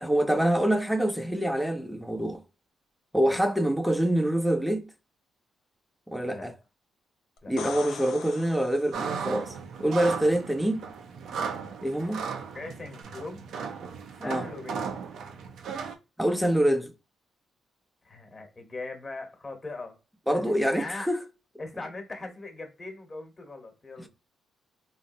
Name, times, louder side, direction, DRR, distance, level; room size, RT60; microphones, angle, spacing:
voice 1, 0.0-2.4 3.1-4.9 6.1-6.5 7.5-9.5 9.8-10.8 11.8-12.2 14.2-14.5 16.2-16.9 20.3-21.2, right 1 dB, ahead, 0.4 m, -25 dB
sound 1, 7.4-9.3 13.0-13.1, left 7 dB, 90° left, 0.4 m, -41 dB
sound 2, 8.9-16.0, right 6 dB, 75° right, 0.5 m, -36 dB
voice 2, 12.5-13.5 14.2-15.1 18.0-20.0 20.3-21.1 21.6-24.1, left 3 dB, 25° left, 1.1 m, -40 dB
3.8 x 2.0 x 2.6 m
cardioid pair, 125°, 0 cm